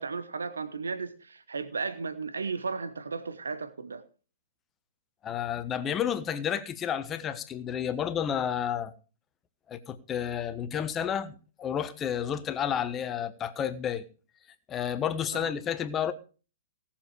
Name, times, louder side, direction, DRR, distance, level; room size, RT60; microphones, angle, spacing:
voice 1, 0.0-4.0 15.3-15.5, right 4 dB, 75° right, 1.0 m, -35 dB
voice 2, 5.2-8.9 9.7-14.0 14.7-16.1, left 9 dB, 20° left, 1.2 m, -31 dB
17.5 x 7.3 x 4.8 m
figure-of-eight pair, 110°, 0 cm